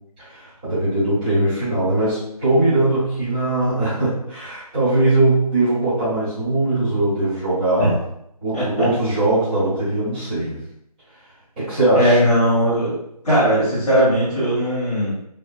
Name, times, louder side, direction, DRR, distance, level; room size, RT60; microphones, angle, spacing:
voice 1, 0.2-8.0 8.4-10.6 11.6-12.2, right 2 dB, 15° right, -15 dB, 1.4 m, -20 dB
voice 2, 8.5-8.9 11.9-12.9 13.2-15.2, equal, 5° left, -15 dB, 0.8 m, -18 dB
3.5 x 3.2 x 2.4 m, 0.76 s
figure-of-eight pair, 165°, 20 cm